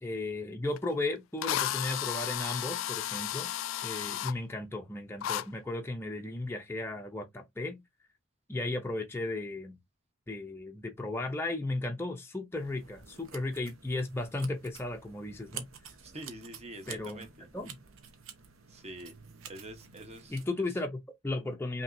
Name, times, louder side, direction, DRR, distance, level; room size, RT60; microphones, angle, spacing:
voice 1, 0.0-3.5 3.8-7.8 8.5-9.8 10.3-15.7 16.9-17.3 17.5-17.8 20.3-21.8, left 2 dB, 10° left, 0.5 m, -35 dB
Drill, 0.8-0.9 1.4-4.3 5.2-5.4, left 12 dB, 65° left, 0.3 m, -33 dB
sound 1, 12.6-20.5, right 7 dB, 70° right, 0.9 m, -49 dB
voice 2, 16.0-17.5 18.7-19.1 19.5-20.4, right 1 dB, 30° right, 1.0 m, -46 dB
5.6 x 2.9 x 2.6 m
head